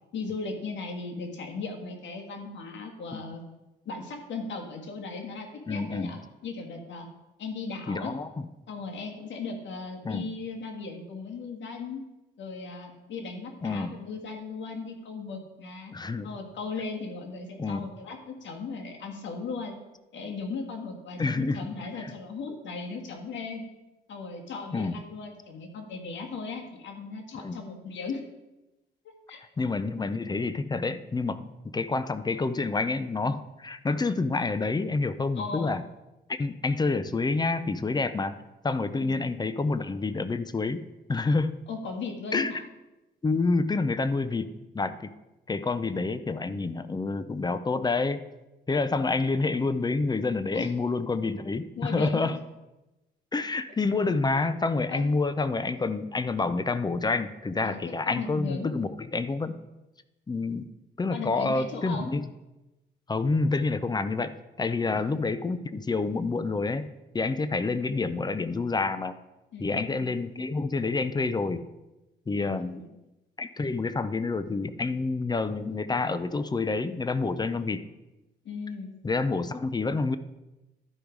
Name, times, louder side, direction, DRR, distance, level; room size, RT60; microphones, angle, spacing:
voice 1, 0.1-3.4 3.9-7.1 7.4-8.1 8.7-12.0 12.4-15.9 16.2-19.7 20.1-23.6 24.1-28.2 29.3-29.4 35.4-35.7 38.9-39.2 41.7-42.6 50.5-50.7 51.8-52.4 54.9-55.1 57.6-57.8 58.1-58.7 61.1-62.1 64.9-65.0 69.5-70.2 72.4-72.9 78.5-78.9, left 4 dB, 70° left, 2 dB, 1.8 m, -37 dB
voice 2, 5.7-6.1 7.9-8.5 10.0-10.2 13.6-13.9 15.9-16.3 17.6-17.9 21.2-21.7 22.0-22.1 24.7-24.9 27.4-27.6 29.6-35.8 36.3-38.4 38.6-40.8 41.1-41.6 42.3-42.5 43.2-45.1 45.5-48.2 48.7-52.4 53.3-59.6 60.3-60.7 61.0-62.3 63.1-66.9 67.1-69.2 69.6-71.6 72.3-72.8 73.4-77.8 79.0-80.2, left 3 dB, 20° left, 13 dB, 0.6 m, -28 dB
12.0 x 5.1 x 4.7 m, 1.0 s
cardioid pair, 90°, 20 cm